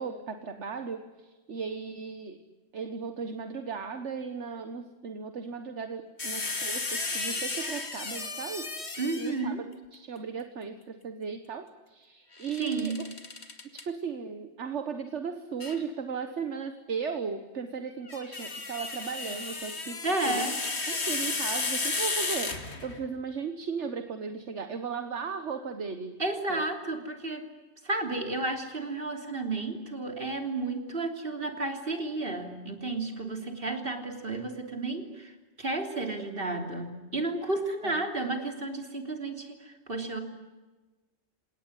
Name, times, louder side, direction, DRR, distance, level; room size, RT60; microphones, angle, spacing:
voice 1, 0.0-2.4 2.7-8.7 9.2-13.1 13.7-20.5 20.9-26.2 26.5-26.6 37.8-38.0, right 6 dB, 70° right, 9 dB, 1.6 m, -36 dB
sound 1, 6.2-9.5 12.4-13.8 15.6-15.8 17.9-23.1, left 3 dB, 60° left, 2.6 m, -33 dB
voice 2, 9.0-9.6 12.6-13.0 20.0-20.5 26.2-27.5 27.8-35.3 35.6-40.2, right 2 dB, 45° right, 5 dB, 3.5 m, -32 dB
28.5 x 18.5 x 9.9 m, 1.2 s
omnidirectional pair, 1.3 m